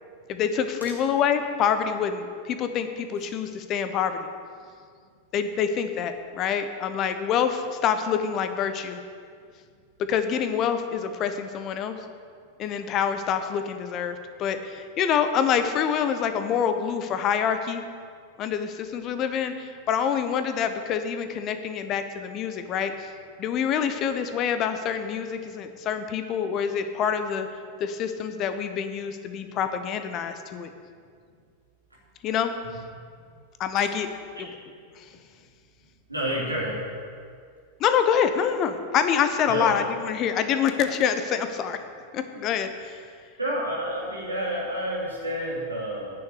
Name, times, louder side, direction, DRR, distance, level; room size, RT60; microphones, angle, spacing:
voice 1, 0.3-4.3 5.3-9.0 10.0-12.0 12.6-17.8 18.4-23.1 23.4-27.5 27.8-30.7 32.2-32.5 33.6-34.1 35.0-35.1 37.8-41.8 42.1-43.0, left 7 dB, 35° left, 9 dB, 0.8 m, -26 dB
voice 2, 36.1-36.8 39.5-39.7 43.4-46.1, equal, 85° right, -5 dB, 3.2 m, -29 dB
9.5 x 6.7 x 8.4 m, 2.1 s
figure-of-eight pair, 90°, 0 cm